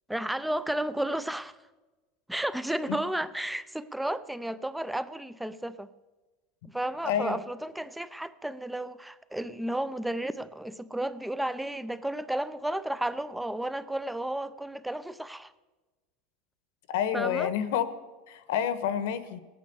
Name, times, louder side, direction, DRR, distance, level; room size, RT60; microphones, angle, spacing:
voice 1, 0.1-1.6 2.3-5.9 6.7-15.5 17.1-17.5, right 1 dB, 5° right, 16 dB, 0.4 m, -32 dB
voice 2, 7.0-7.4 16.9-17.8 18.3-19.4, left 9 dB, 75° left, 12 dB, 1.2 m, -28 dB
17.5 x 9.3 x 6.9 m, 1.2 s
supercardioid pair, 165°, 0 cm